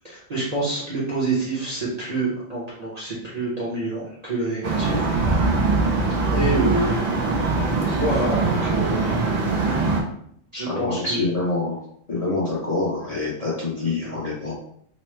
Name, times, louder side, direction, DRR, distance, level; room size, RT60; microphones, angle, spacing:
voice 1, 0.0-5.5 6.3-7.3 7.8-9.2 10.5-11.2, right 2 dB, 40° right, -7 dB, 0.7 m, -27 dB
Far Away City Traffic Ambience, 4.6-10.0, right 3 dB, 80° right, 0.3 m, -22 dB
voice 2, 10.7-11.8 12.1-14.6, left 3 dB, 35° left, -7 dB, 0.7 m, -26 dB
3.1 x 2.0 x 3.2 m, 0.67 s
omnidirectional pair, 1.4 m